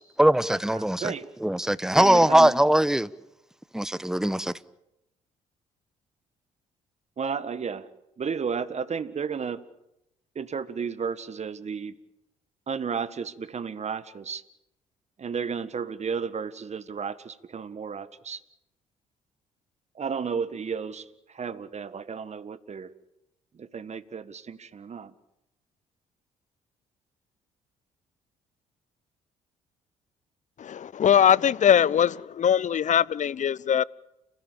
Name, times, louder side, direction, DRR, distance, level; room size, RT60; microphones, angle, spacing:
voice 1, 0.2-1.1 1.4-3.1 3.7-4.5, right 1 dB, 5° right, 1.1 m, -21 dB
voice 2, 0.7-1.3 2.0-2.5 7.2-7.9 8.2-9.7 10.4-12.0 12.7-14.4 15.2-18.4 20.0-22.9 23.5-25.1, right 6 dB, 40° right, 1.8 m, -33 dB
voice 3, 30.6-33.8, left 9 dB, 45° left, 0.8 m, -21 dB
30.0 x 16.5 x 8.9 m
hypercardioid pair, 50°, 17 cm